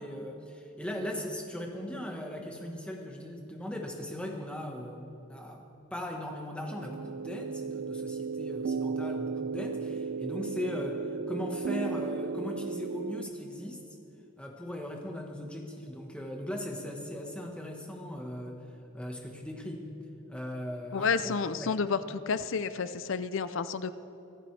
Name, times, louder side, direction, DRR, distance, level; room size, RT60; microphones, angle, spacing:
voice 1, 0.0-13.8 14.4-18.6 18.9-19.9 20.3-21.3 21.6-21.8, left 1 dB, 5° left, 1 dB, 1.4 m, -38 dB
sound 1, 6.7-13.2, right 5 dB, 55° right, 0.4 m, -35 dB
voice 2, 20.9-22.0 22.3-23.9, left 5 dB, 60° left, 13 dB, 0.5 m, -30 dB
24.0 x 13.0 x 3.4 m, 3.0 s
head